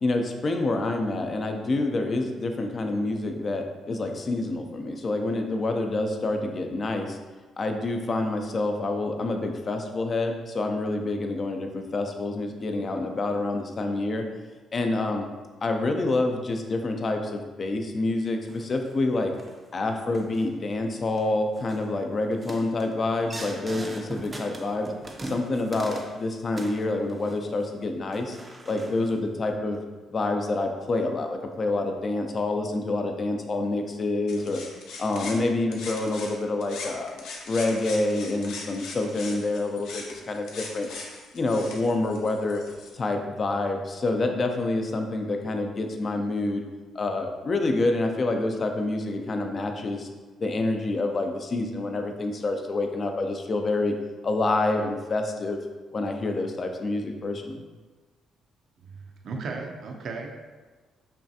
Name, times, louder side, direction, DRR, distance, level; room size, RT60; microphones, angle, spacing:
voice 1, 0.0-7.2 7.6-14.2 14.7-15.3 15.6-19.3 19.7-24.9 25.2-28.4 28.7-29.8 30.1-34.6 35.0-37.1 37.5-40.9 41.3-42.6 42.9-46.6 46.9-50.1 50.4-53.9 54.2-55.6 55.9-57.6, left 2 dB, 40° left, 4 dB, 0.5 m, -27 dB
sound 1, 18.5-18.9 19.4-19.6 20.1-20.5 20.9-21.2 21.5-21.8 22.3-26.2 26.5-27.6 28.1-29.1, right 1 dB, 20° right, 0.5 m, -41 dB
sound 2, 34.3-36.4 36.6-42.9, left 3 dB, 85° left, 0.6 m, -40 dB
voice 2, 58.8-60.4, right 4 dB, 65° right, 2 dB, 0.6 m, -36 dB
5.4 x 2.4 x 2.7 m, 1.3 s
cardioid pair, 90°, 0 cm